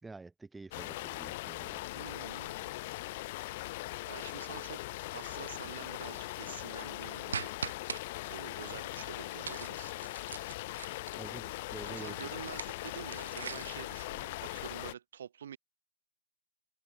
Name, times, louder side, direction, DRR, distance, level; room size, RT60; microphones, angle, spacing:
voice 1, 0.0-1.8 11.2-12.3, right 3 dB, 5° right, 4.0 m, -48 dB
sound 1, 0.7-14.9, left 19 dB, 30° left, 1.9 m, -40 dB
voice 2, 2.0-2.7 3.7-7.5 8.3-9.9 11.8-15.6, right 9 dB, 55° right, 4.1 m, -47 dB
sound 2, 7.3-8.0 9.4-11.3 12.4-13.8, right 6 dB, 75° right, 0.7 m, -41 dB
hypercardioid pair, 160°, 0 cm